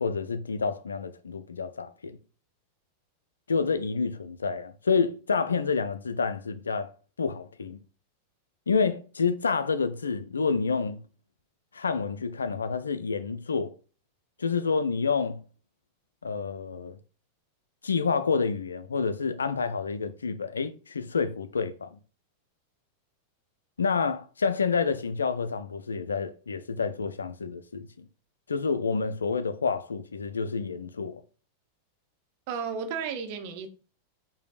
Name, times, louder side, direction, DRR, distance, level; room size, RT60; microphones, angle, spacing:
voice 1, 0.0-2.2 3.5-6.9 7.2-7.8 8.7-11.0 11.7-13.7 14.4-15.4 16.2-17.0 17.8-22.0 23.8-27.9 28.5-31.2, left 5 dB, 75° left, 0.3 m, -28 dB
voice 2, 32.5-33.7, right 6 dB, 45° right, 0.7 m, -33 dB
5.0 x 2.6 x 2.4 m
figure-of-eight pair, 90°, 0 cm